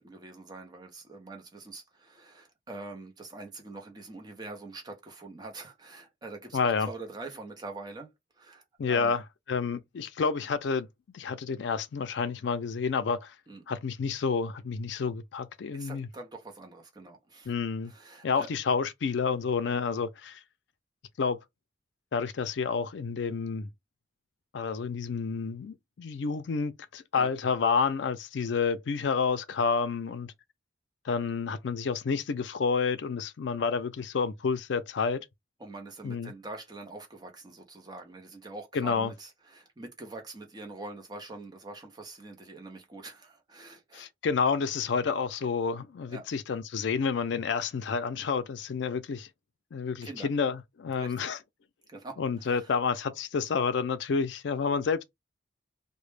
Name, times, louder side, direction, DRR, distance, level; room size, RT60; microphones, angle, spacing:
voice 1, 0.0-9.1 13.5-13.6 15.7-17.5 17.9-18.5 27.1-27.3 35.6-44.1 46.1-46.3 50.0-50.3 51.0-51.3 51.9-52.7, right 2 dB, 20° right, 0.5 m, -44 dB
voice 2, 6.5-6.9 8.8-9.2 9.5-10.9 11.1-13.3 13.7-16.1 17.5-17.9 18.2-20.4 21.2-21.4 22.1-23.7 24.5-30.3 31.0-35.3 36.0-36.3 38.7-39.1 43.9-49.3 49.7-51.4 52.2-55.0, left 5 dB, 65° left, 0.4 m, -29 dB
2.1 x 2.0 x 3.1 m
head